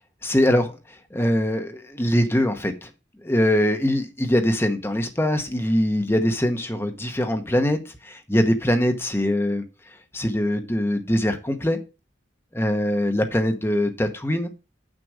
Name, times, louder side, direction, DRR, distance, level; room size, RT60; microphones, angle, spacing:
voice 1, 0.2-2.9 3.2-11.8 12.5-14.5, left 1 dB, 15° left, 0.9 m, -23 dB
7.7 x 6.3 x 4.8 m
head